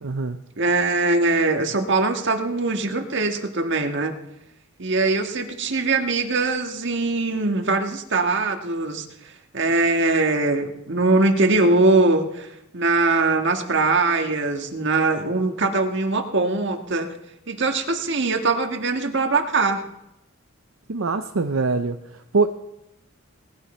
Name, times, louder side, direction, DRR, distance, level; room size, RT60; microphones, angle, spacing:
voice 1, 0.0-0.4 20.9-22.5, right 4 dB, 80° right, 7 dB, 0.7 m, -23 dB
voice 2, 0.6-4.1 4.8-9.1 9.5-12.5 12.7-17.1 17.5-19.8, right 3 dB, 60° right, 5 dB, 1.6 m, -21 dB
18.5 x 15.0 x 4.4 m, 0.87 s
head